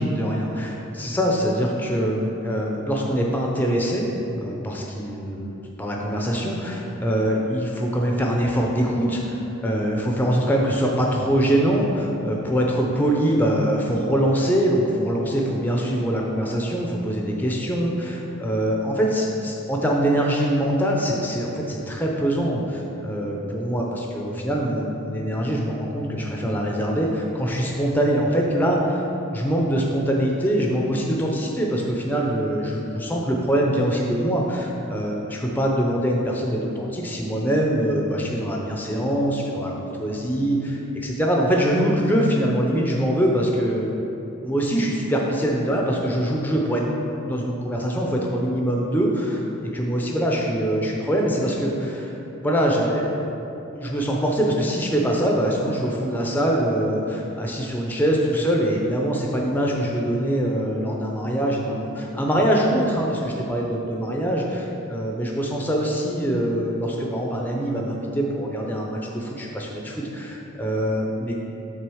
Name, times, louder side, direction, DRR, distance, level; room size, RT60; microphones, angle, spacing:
voice 1, 0.0-4.1 4.4-29.0 29.3-39.7 40.0-43.9 44.4-46.9 47.2-52.1 52.4-53.3 53.7-71.4, equal, 10° left, -1 dB, 0.6 m, -23 dB
6.3 x 3.9 x 6.2 m, 2.9 s
head